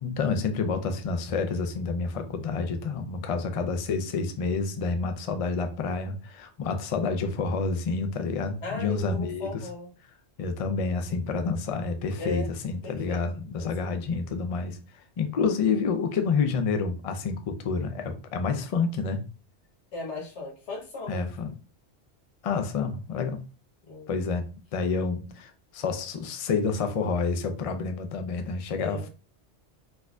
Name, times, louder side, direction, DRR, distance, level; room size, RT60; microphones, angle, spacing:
voice 1, 0.0-9.6 10.4-19.2 21.1-21.5 22.4-23.4 24.1-24.5 24.7-29.1, left 4 dB, 50° left, 0.4 m, -29 dB
voice 2, 8.6-9.9 12.2-12.5 12.8-13.2 13.6-14.0 19.9-21.2 23.9-24.1 28.8-29.1, left 3 dB, 90° left, 1.4 m, -37 dB
4.1 x 2.6 x 2.3 m
omnidirectional pair, 1.1 m